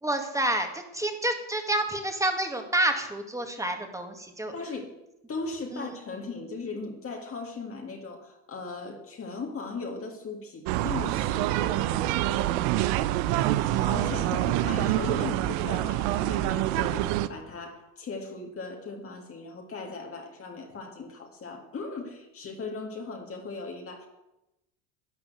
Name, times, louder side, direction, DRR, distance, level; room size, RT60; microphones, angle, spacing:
voice 1, 0.0-4.5 5.7-5.9 13.3-14.1, right 1 dB, 5° right, 5 dB, 2.1 m, -29 dB
voice 2, 4.5-4.9 5.3-12.5 13.9-24.1, left 3 dB, 30° left, 2 dB, 2.1 m, -38 dB
sound 1, 10.7-17.3, right 14 dB, 70° right, 0.9 m, -26 dB
11.5 x 10.5 x 7.9 m, 0.93 s
supercardioid pair, 110°, 45 cm